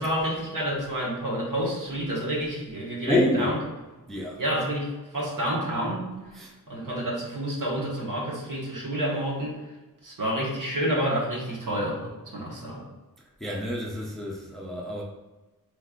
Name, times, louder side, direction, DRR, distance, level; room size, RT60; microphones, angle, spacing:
voice 1, 0.0-3.5 4.4-9.6 10.0-12.0 12.3-12.9, equal, 60° right, -4 dB, 1.4 m, -29 dB
voice 2, 3.1-3.5 4.1-4.4 6.3-6.5 13.4-15.0, left 1 dB, ahead, -2 dB, 0.5 m, -28 dB
5.2 x 3.2 x 2.5 m, 1.1 s
wide cardioid pair, 115°, 36 cm